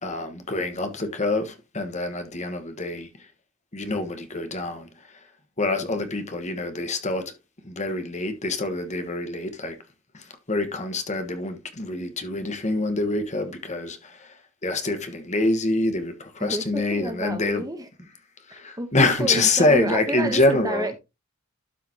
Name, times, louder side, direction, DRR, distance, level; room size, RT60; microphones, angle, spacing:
voice 1, 0.0-3.1 3.7-4.9 5.6-7.3 7.6-9.8 10.1-14.3 14.6-17.6 18.5-20.9, left 2 dB, 35° left, 1.4 m, -25 dB
voice 2, 16.4-18.1 18.5-21.0, right 1 dB, 15° right, 1.0 m, -31 dB
12.5 x 5.1 x 2.9 m
head